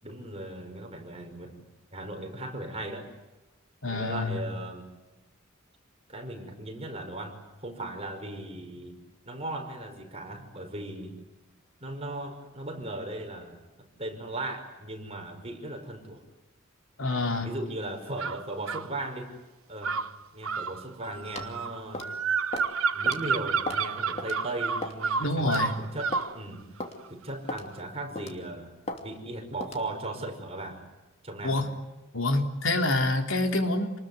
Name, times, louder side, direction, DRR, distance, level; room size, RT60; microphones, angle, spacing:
voice 1, 0.0-3.1 3.9-4.9 6.1-9.0 9.2-11.2 11.8-13.6 14.0-16.2 17.4-19.3 19.7-20.0 20.3-22.1 22.9-26.7 27.1-28.7 29.0-30.8 31.2-31.6, right 1 dB, 30° right, 3 dB, 5.5 m, -37 dB
voice 2, 3.8-4.4 17.0-17.5 25.2-25.7 31.4-31.7 32.1-33.9, left 2 dB, 70° left, 4 dB, 3.7 m, -27 dB
sound 1, 18.2-18.9 19.8-26.3, right 5 dB, 90° right, 1.2 m, -30 dB
sound 2, 21.4-21.5 21.9-22.2 22.5-22.7 23.1-23.2 23.7-23.9 24.2-24.3 24.8-25.1 25.5-25.6 26.1-26.3 26.8-27.0 27.5-27.7 28.2-28.4 28.9-29.0 29.6-29.8, left 2 dB, 30° left, 2.8 m, -35 dB
28.5 x 20.5 x 9.6 m, 1.0 s
head